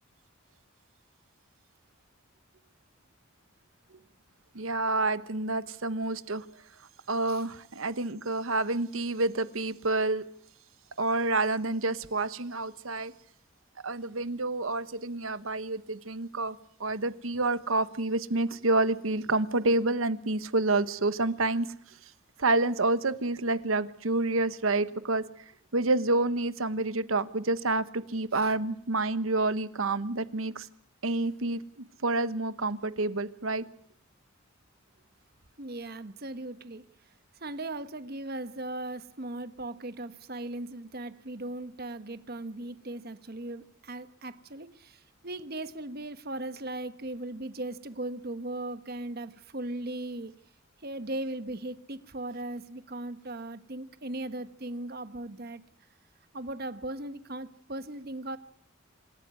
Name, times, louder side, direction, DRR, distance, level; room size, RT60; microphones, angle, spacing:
voice 1, 4.5-6.4 7.1-10.2 11.0-13.1 13.8-21.7 22.4-25.2 25.7-30.7 31.0-31.6 32.0-33.6, right 2 dB, 85° right, 1.1 m, -28 dB
voice 2, 35.6-36.9 37.4-50.4 50.8-55.6 56.3-58.4, right 2 dB, 50° right, 1.2 m, -38 dB
26.5 x 12.5 x 9.6 m
head